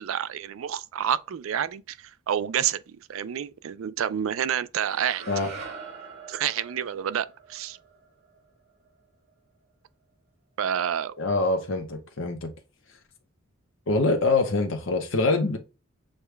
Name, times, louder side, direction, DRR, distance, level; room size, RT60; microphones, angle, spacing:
voice 1, 0.0-5.2 6.3-7.8 10.6-11.1, right 9 dB, 80° right, 0.4 m, -29 dB
sound 1, 4.8-9.0, right 5 dB, 50° right, 2.8 m, -43 dB
voice 2, 11.2-12.5 13.9-15.6, left 3 dB, 65° left, 0.7 m, -24 dB
6.4 x 2.2 x 3.2 m
head